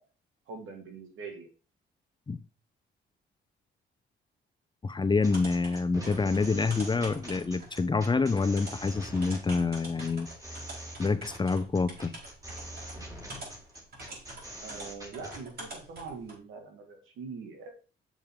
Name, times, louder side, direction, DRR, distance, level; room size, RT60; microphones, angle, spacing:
voice 1, 0.5-1.5 14.6-17.7, right 4 dB, 85° right, 3 dB, 2.2 m, -43 dB
voice 2, 4.8-10.3 11.0-12.1, left 4 dB, 25° left, 11 dB, 0.7 m, -27 dB
sound 1, 5.2-15.4, equal, 15° right, 3.4 m, -44 dB
sound 2, 5.2-16.4, right 2 dB, 55° right, 5.1 m, -46 dB
7.1 x 6.8 x 3.7 m, 0.35 s
cardioid pair, 90°, 20 cm